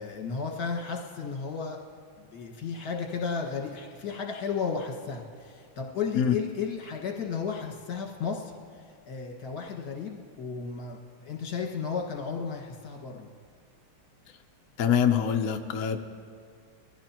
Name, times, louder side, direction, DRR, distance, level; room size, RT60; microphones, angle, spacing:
voice 1, 0.0-1.8 2.2-13.3, left 5 dB, 55° left, 0 dB, 2.2 m, -34 dB
voice 2, 14.8-16.0, left 8 dB, 70° left, 5 dB, 0.7 m, -24 dB
22.5 x 15.5 x 3.0 m, 2.2 s
omnidirectional pair, 2.4 m